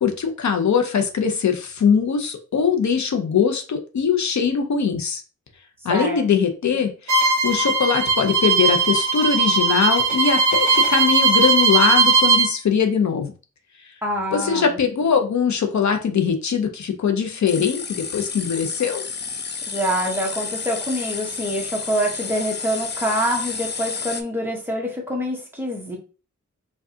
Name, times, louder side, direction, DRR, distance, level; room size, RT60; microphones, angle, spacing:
voice 1, 0.0-5.2 5.8-13.3 14.3-19.0, left 6 dB, 70° left, 5 dB, 0.7 m, -21 dB
voice 2, 5.9-6.2 14.0-14.8 19.7-26.0, equal, 5° right, -2 dB, 1.1 m, -25 dB
Bowed string instrument, 7.1-12.5, right 4 dB, 75° right, 0.8 m, -18 dB
sound 1, 17.5-24.2, left 5 dB, 35° left, 0.4 m, -31 dB
4.6 x 2.4 x 2.7 m, 0.34 s
wide cardioid pair, 120°, 29 cm